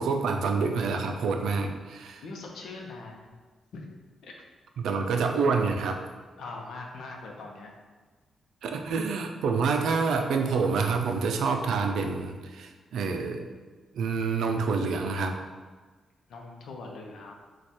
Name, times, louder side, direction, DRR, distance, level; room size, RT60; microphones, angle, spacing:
voice 1, 0.0-2.2 4.8-6.0 8.6-13.5 13.9-15.4, right 4 dB, 80° right, 5 dB, 0.4 m, -27 dB
voice 2, 2.2-3.3 3.7-3.9 4.2-4.4 6.4-7.7 16.3-17.3, left 3 dB, 70° left, 0 dB, 0.7 m, -41 dB
4.7 x 2.4 x 4.2 m, 1.4 s
wide cardioid pair, 170°, 0 cm